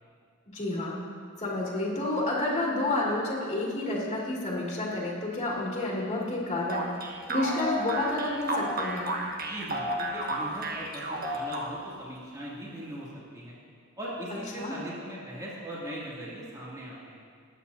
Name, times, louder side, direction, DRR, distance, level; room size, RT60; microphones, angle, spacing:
voice 1, 0.5-1.0 1.4-9.1 14.5-14.8, left 2 dB, 30° left, -5 dB, 2.4 m, -30 dB
sound 1, 6.7-12.0, right 1 dB, 45° right, 1.3 m, -32 dB
voice 2, 9.4-13.1 13.3-13.5 14.0-17.2, right 1 dB, 15° right, -7 dB, 2.5 m, -40 dB
20.5 x 9.1 x 2.7 m, 2.2 s
head